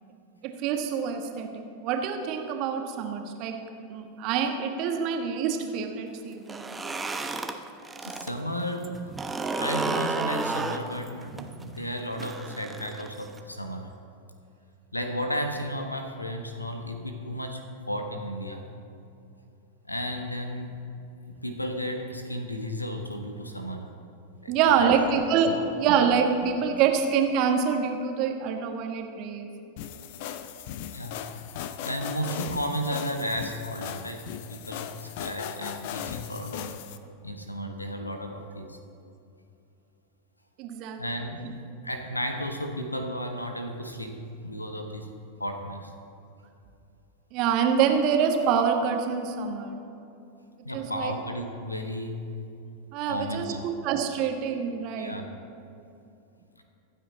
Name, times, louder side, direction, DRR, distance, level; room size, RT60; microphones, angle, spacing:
voice 1, 0.4-3.6 3.9-6.8 24.5-29.5 40.6-41.0 41.4-41.5 47.3-49.8 50.7-51.1 52.9-55.2, right 7 dB, 40° right, 4 dB, 1.6 m, -26 dB
sound 1, 6.4-8.3 8.6-13.4, right 3 dB, 10° right, 0.9 m, -32 dB
voice 2, 8.0-9.1 9.6-13.9 14.9-18.7 19.8-20.8 21.2-23.9 24.4-24.9 25.5-25.7 30.9-31.2 31.8-36.7 37.2-38.8 41.0-41.4 41.8-45.1 45.4-45.9 50.6-52.2 53.0-53.7 54.9-55.3 56.6-56.7, equal, 85° left, 5 dB, 1.3 m, -34 dB
sound 2, 29.8-37.0, left 9 dB, 50° left, 0.7 m, -38 dB
25.5 x 8.6 x 4.1 m, 2.6 s
figure-of-eight pair, 90°, 0 cm